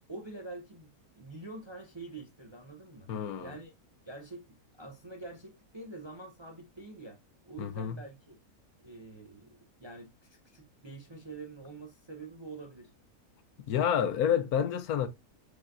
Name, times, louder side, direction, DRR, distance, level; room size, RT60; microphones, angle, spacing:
voice 1, 0.1-3.1 3.4-3.7 4.1-7.2 7.5-8.4 8.8-12.9, right 3 dB, 25° right, 0.6 m, -46 dB
voice 2, 3.1-3.5 7.6-8.0 13.7-15.1, left 8 dB, 75° left, 1.2 m, -29 dB
4.9 x 3.8 x 2.5 m
omnidirectional pair, 1.6 m